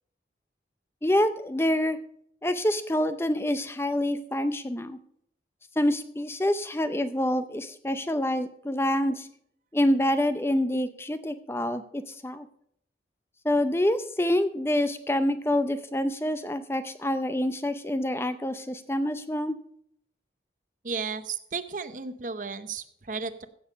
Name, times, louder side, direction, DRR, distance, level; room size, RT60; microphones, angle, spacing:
voice 1, 1.0-2.0 2.4-5.0 5.8-9.3 9.7-12.5 13.4-19.5, left 1 dB, 15° left, 11 dB, 0.5 m, -26 dB
voice 2, 20.8-23.5, right 5 dB, 45° right, 12 dB, 0.7 m, -34 dB
15.5 x 7.1 x 5.1 m, 0.68 s
head